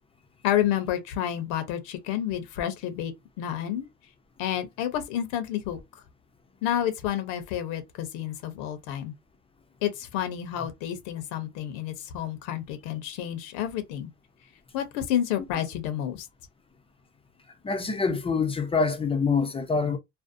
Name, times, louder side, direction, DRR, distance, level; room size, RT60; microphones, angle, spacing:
voice 1, 0.4-3.1 3.4-3.9 4.4-6.0 6.6-9.1 9.8-14.1 14.7-16.3, left 11 dB, 70° left, 0.8 m, -30 dB
voice 2, 17.6-20.0, left 4 dB, 15° left, 0.5 m, -25 dB
2.5 x 2.1 x 2.5 m
supercardioid pair, 115°, 34 cm